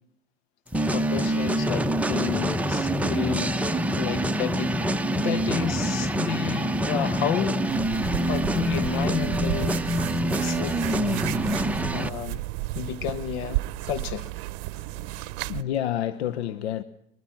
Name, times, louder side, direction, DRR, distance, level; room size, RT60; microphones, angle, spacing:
sound 1, 0.7-12.1, right 1 dB, 5° right, 1.0 m, -26 dB
voice 1, 0.9-4.8 5.2-7.6 8.3-9.8 10.4-11.3 11.9-12.4 12.7-14.3, left 10 dB, 70° left, 1.6 m, -32 dB
sound 2, 7.7-15.6, right 19 dB, 60° right, 0.8 m, -33 dB
voice 2, 14.7-16.8, left 11 dB, 85° left, 0.9 m, -30 dB
23.0 x 22.0 x 6.0 m
hypercardioid pair, 95°, 32 cm